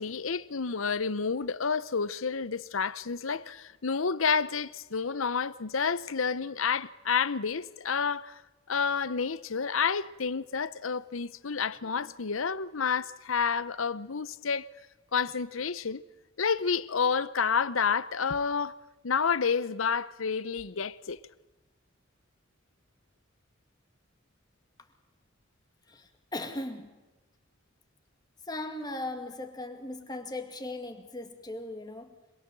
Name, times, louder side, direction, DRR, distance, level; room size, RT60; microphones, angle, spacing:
voice 1, 0.0-8.4 8.7-14.7 15.1-16.0 16.4-18.7 19.0-21.2, left 6 dB, 85° left, 0.8 m, -29 dB
voice 2, 25.9-26.9 28.5-32.2, left 2 dB, 20° left, 2.3 m, -38 dB
26.5 x 21.5 x 7.6 m
head